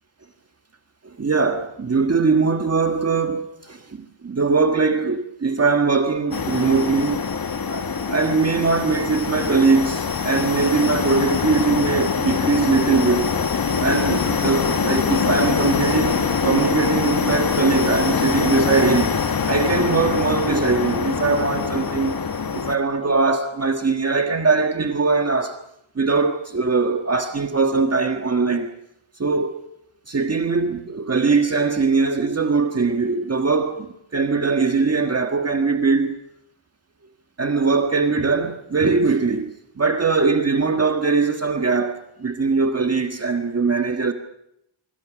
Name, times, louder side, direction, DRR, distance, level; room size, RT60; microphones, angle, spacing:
voice 1, 1.0-7.3 7.7-13.3 13.8-19.2 19.5-22.2 22.5-25.6 25.9-28.7 29.2-29.6 30.1-36.2 37.4-44.1, right 4 dB, 30° right, 1.5 m, -21 dB
sound 1, 6.3-22.8, left 5 dB, 45° left, 1.7 m, -23 dB
25.0 x 25.0 x 6.2 m
wide cardioid pair, 170°, 47 cm